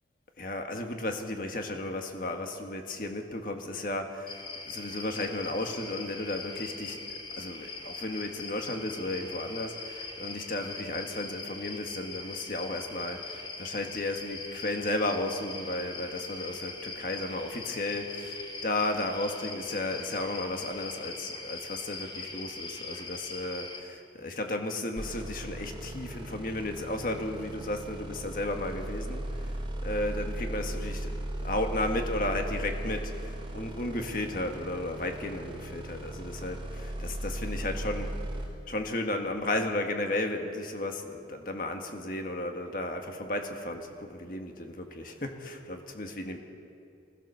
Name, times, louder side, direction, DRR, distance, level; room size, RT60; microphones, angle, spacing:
voice 1, 0.4-29.5 29.8-31.1 31.4-38.2 38.7-46.4, left 1 dB, 50° left, 4 dB, 1.7 m, -34 dB
sound 1, 4.3-23.8, left 3 dB, 25° left, 2.5 m, -41 dB
sound 2, 25.0-38.5, right 1 dB, 30° right, 4.2 m, -37 dB
23.5 x 16.0 x 7.0 m, 2.7 s
head